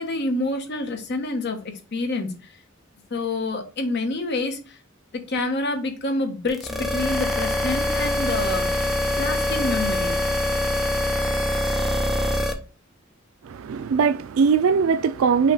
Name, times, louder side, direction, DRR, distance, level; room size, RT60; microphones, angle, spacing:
voice 1, 0.0-1.6 1.9-2.3 3.1-4.8 5.3-10.2, left 2 dB, 55° left, 1.0 m, -27 dB
sound 1, 6.5-12.5, left 1 dB, ahead, 0.6 m, -24 dB
voice 2, 13.4-15.5, right 6 dB, 75° right, 0.4 m, -20 dB
5.8 x 2.3 x 3.8 m
head